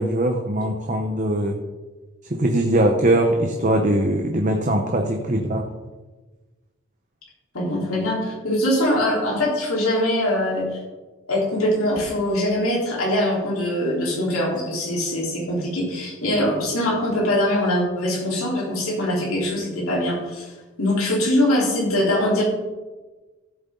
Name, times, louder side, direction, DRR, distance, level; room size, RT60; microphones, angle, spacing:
voice 1, 0.0-1.6 2.3-5.7, right 1 dB, 35° right, 3 dB, 0.9 m, -21 dB
voice 2, 7.5-10.6 11.3-20.5 20.8-22.4, left 1 dB, 85° left, -4 dB, 3.9 m, -22 dB
15.0 x 7.9 x 3.9 m, 1.2 s
head